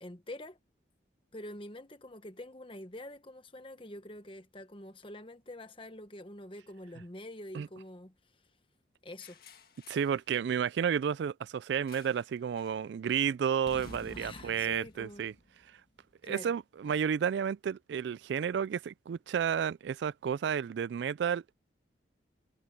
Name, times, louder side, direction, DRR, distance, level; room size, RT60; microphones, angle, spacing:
voice 1, 0.0-0.6 1.3-8.1 9.0-9.4 14.1-15.2 16.2-16.5, left 1 dB, 30° left, 1.3 m, -46 dB
sound 1, 9.2-10.2 11.9-12.3 12.6-12.8 13.6-16.0, left 2 dB, 55° left, 1.9 m, -51 dB
voice 2, 9.9-15.3 16.2-21.5, right 7 dB, 75° right, 0.3 m, -31 dB
head